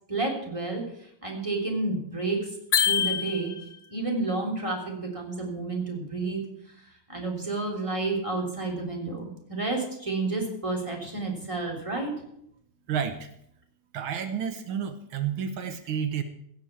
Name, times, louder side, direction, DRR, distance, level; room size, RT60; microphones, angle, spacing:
voice 1, 0.1-2.5 2.8-3.5 3.9-6.4 7.1-12.1, right 3 dB, 15° right, 0 dB, 3.4 m, -30 dB
sound 1, 2.7-3.9, left 8 dB, 60° left, 1.6 m, -25 dB
voice 2, 12.9-13.3 13.9-16.2, right 8 dB, 80° right, 9 dB, 1.8 m, -30 dB
17.0 x 6.7 x 8.6 m, 0.74 s
omnidirectional pair, 2.2 m